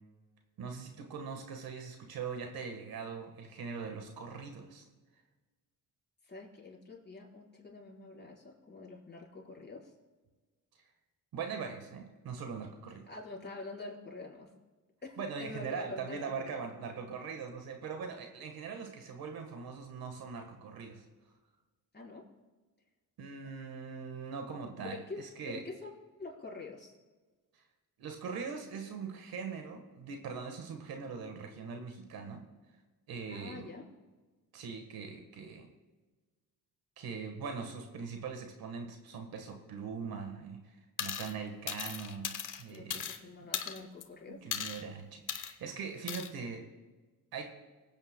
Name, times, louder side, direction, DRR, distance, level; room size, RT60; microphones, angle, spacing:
voice 1, 0.6-4.8 11.3-13.1 15.2-21.0 23.2-25.6 27.5-27.6 28.0-32.4 33.1-33.7 34.5-35.7 37.0-43.1 44.3-46.6 47.3-47.5, right 5 dB, 80° right, 5 dB, 1.4 m, -41 dB
voice 2, 6.2-9.9 13.1-14.5 15.0-16.2 16.5-16.6 21.9-22.3 24.8-25.9 26.2-26.9 33.3-33.9 42.7-44.4, left 3 dB, 30° left, -3 dB, 4.3 m, -46 dB
sound 1, 41.0-41.3 41.7-43.2 43.5-44.0 44.5-44.8 45.3-45.5 46.1-46.3, left 8 dB, 60° left, 1.1 m, -37 dB
24.5 x 8.9 x 2.2 m, 1.3 s
cardioid pair, 80°, 36 cm